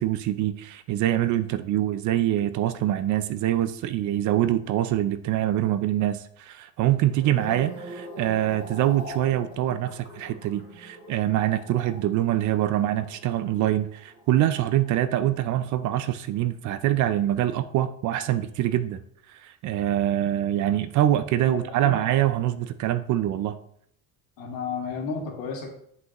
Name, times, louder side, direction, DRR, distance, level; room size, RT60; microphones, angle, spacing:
voice 1, 0.0-19.0 19.3-23.6, right 13 dB, 50° right, 12 dB, 0.4 m, -24 dB
sound 1, 7.1-15.4 15.7-16.1, right 1 dB, 15° right, 2.4 m, -43 dB
voice 2, 21.5-22.0 24.4-25.7, left 5 dB, 55° left, 1 dB, 2.0 m, -32 dB
7.9 x 5.5 x 3.0 m, 0.66 s
cardioid pair, 145°, 40 cm